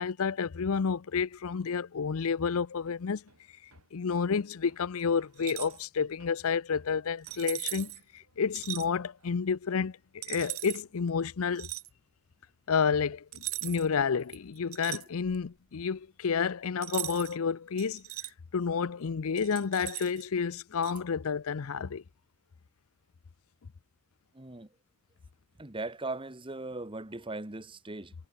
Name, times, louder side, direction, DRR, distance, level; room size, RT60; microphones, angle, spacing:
voice 1, 0.0-3.2 3.9-11.7 12.7-18.0 18.5-22.0, left 6 dB, 70° left, 0.5 m, -30 dB
Hammer, 2.9-10.2 10.4-12.2, right 3 dB, 85° right, 4.7 m, -66 dB
sound 1, 5.3-5.8 7.2-8.0 8.5-8.9 10.2-10.8 11.5-11.9 13.3-13.9 14.3-15.5 16.8-17.4 17.8-18.3 19.4-20.2 20.8-21.0, right 17 dB, 70° right, 1.5 m, -38 dB
voice 2, 24.3-24.7 25.6-28.1, right 2 dB, 25° right, 1.3 m, -39 dB
head